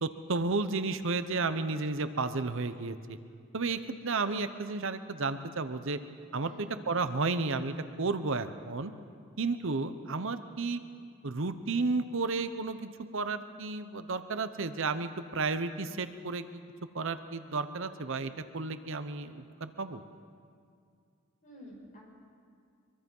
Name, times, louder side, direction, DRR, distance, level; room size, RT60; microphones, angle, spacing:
voice 1, 0.0-3.2 3.5-6.0 6.3-8.9 9.4-10.8 11.2-16.4 16.9-20.0, right 3 dB, 65° right, 10 dB, 0.9 m, -32 dB
voice 2, 6.4-6.8 21.4-22.0, equal, 40° left, -2 dB, 6.0 m, -51 dB
24.0 x 23.5 x 5.5 m, 2.2 s
head